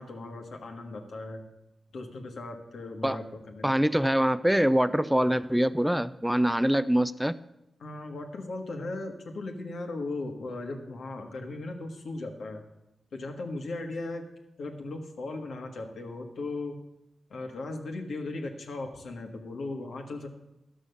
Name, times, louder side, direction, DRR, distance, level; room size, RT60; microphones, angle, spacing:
voice 1, 0.0-1.4 1.9-3.7 7.8-12.6 13.1-14.3 14.6-16.8 17.3-20.3, left 2 dB, 80° left, 3 dB, 1.6 m, -37 dB
voice 2, 3.6-7.4, equal, 5° right, 15 dB, 0.4 m, -24 dB
11.5 x 6.3 x 6.8 m, 0.88 s
cardioid pair, 55°, 0 cm